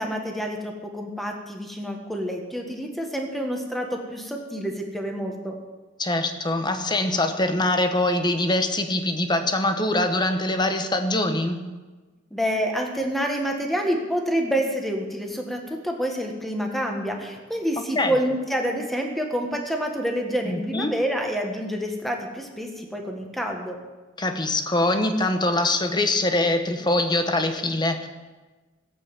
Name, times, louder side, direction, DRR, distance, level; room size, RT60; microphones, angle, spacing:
voice 1, 0.0-5.6 12.3-23.8, equal, ahead, 2 dB, 1.7 m, -28 dB
voice 2, 6.0-11.6 17.9-18.2 20.4-20.9 24.2-28.1, left 2 dB, 20° left, 7 dB, 1.1 m, -23 dB
16.0 x 8.4 x 7.2 m, 1.3 s
head